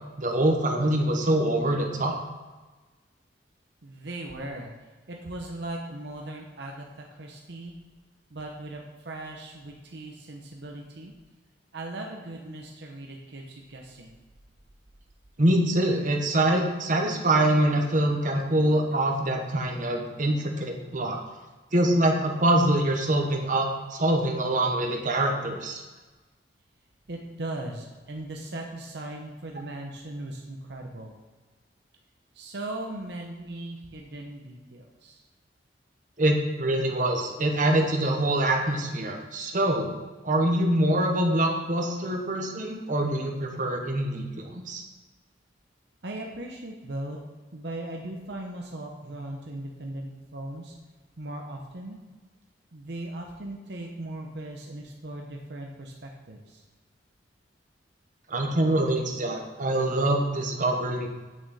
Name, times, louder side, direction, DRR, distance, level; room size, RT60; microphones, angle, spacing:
voice 1, 0.2-2.2 15.4-21.2 21.7-25.8 36.2-39.9 40.2-44.8 58.3-61.1, right 1 dB, 45° right, 2 dB, 1.1 m, -24 dB
voice 2, 3.8-4.7 5.1-7.8 8.3-11.1 11.7-14.1 27.1-31.1 32.3-35.2 46.0-47.2 47.5-50.7 51.2-52.0 52.7-56.6, right 1 dB, 65° right, 1 dB, 0.9 m, -38 dB
8.6 x 6.2 x 4.1 m, 1.3 s
head